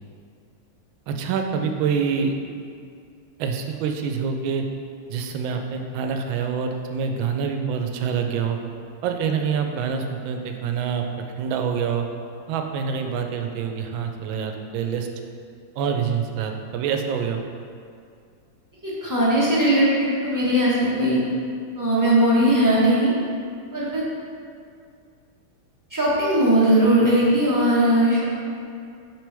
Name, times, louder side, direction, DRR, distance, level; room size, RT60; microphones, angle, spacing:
voice 1, 1.1-2.3 3.4-4.6 5.1-8.6 9.0-11.0 11.4-12.1 12.5-15.1 15.8-17.4, right 6 dB, 90° right, 4 dB, 1.4 m, -26 dB
voice 2, 18.8-21.2 21.8-23.1 23.7-24.0 25.9-28.2, right 1 dB, 15° right, -8 dB, 0.9 m, -19 dB
6.1 x 5.3 x 3.4 m, 2.3 s
omnidirectional pair, 2.1 m